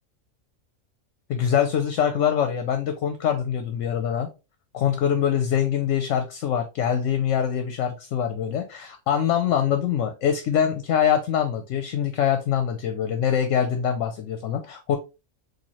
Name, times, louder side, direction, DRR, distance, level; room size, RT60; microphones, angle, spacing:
voice 1, 1.3-4.3 4.7-15.0, left 8 dB, 70° left, 7 dB, 0.9 m, -24 dB
4.3 x 2.5 x 2.9 m, 0.28 s
omnidirectional pair, 1.5 m